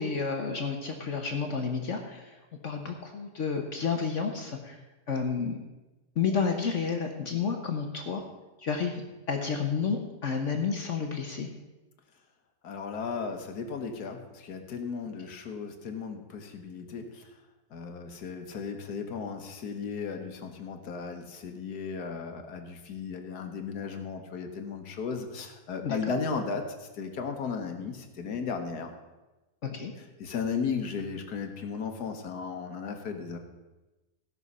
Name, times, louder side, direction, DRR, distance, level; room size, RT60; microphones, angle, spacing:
voice 1, 0.0-2.3 2.6-4.8 5.1-5.6 6.2-8.2 8.6-11.5 25.8-26.0 29.6-29.9, left 5 dB, 50° left, 3 dB, 1.2 m, -30 dB
voice 2, 12.6-17.3 17.7-28.9 30.2-33.4, left 5 dB, 65° left, 5 dB, 1.7 m, -35 dB
16.5 x 6.2 x 5.4 m, 1.1 s
omnidirectional pair, 1.9 m